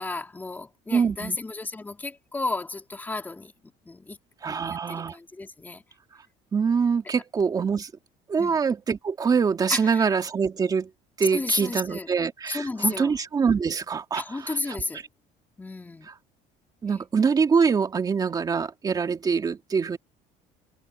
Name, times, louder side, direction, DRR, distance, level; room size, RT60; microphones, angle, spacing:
voice 1, 0.0-4.2 4.5-5.8 8.4-8.6 9.7-10.2 11.3-12.1 12.5-13.1 14.1-15.0 15.6-16.1, left 3 dB, 10° left, 2.8 m, -33 dB
voice 2, 0.9-1.4 4.4-5.2 6.5-7.9 8.3-10.9 11.2-14.8 16.8-20.0, right 5 dB, 25° right, 2.4 m, -24 dB
cardioid pair, 135°, 15 cm